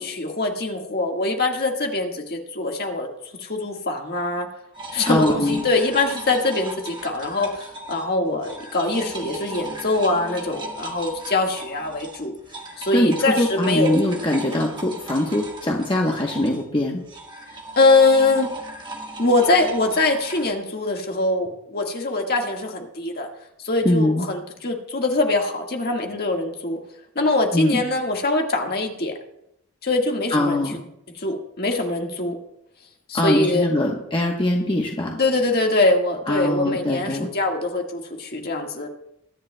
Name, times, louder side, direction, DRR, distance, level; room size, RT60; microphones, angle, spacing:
voice 1, 0.0-3.1 3.4-4.5 4.9-12.3 12.8-14.0 17.8-18.5 19.2-23.3 23.6-26.8 27.2-29.1 29.8-30.6 31.2-32.4 33.1-33.7 35.1-38.9, left 2 dB, 45° left, 2 dB, 1.6 m, -23 dB
sound 1, 4.7-8.1 8.4-20.5, right 2 dB, 20° right, 1.3 m, -37 dB
voice 2, 5.1-5.6 12.7-17.0 23.8-24.3 27.5-27.8 30.3-30.7 33.1-35.2 36.3-37.3, left 1 dB, 25° left, 0 dB, 1.0 m, -22 dB
22.0 x 10.5 x 2.2 m, 0.78 s
head